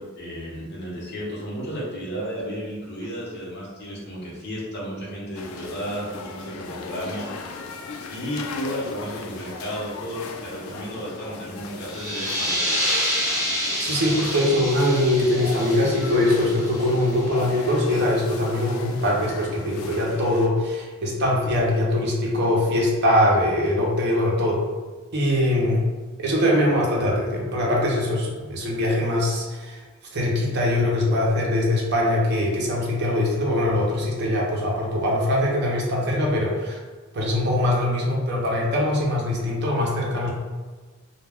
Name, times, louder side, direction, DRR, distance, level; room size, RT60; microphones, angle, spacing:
voice 1, 0.0-7.5 8.1-12.8, equal, 55° left, -5 dB, 0.8 m, -33 dB
sound 1, 5.4-20.5, left 4 dB, 70° left, 0.3 m, -37 dB
sound 2, 11.8-17.2, equal, 15° right, 0.9 m, -28 dB
voice 2, 13.8-24.6 25.1-25.9 26.2-29.8 30.1-36.8 37.1-40.3, left 1 dB, 55° right, -3 dB, 0.7 m, -22 dB
2.2 x 2.2 x 3.3 m, 1.3 s
head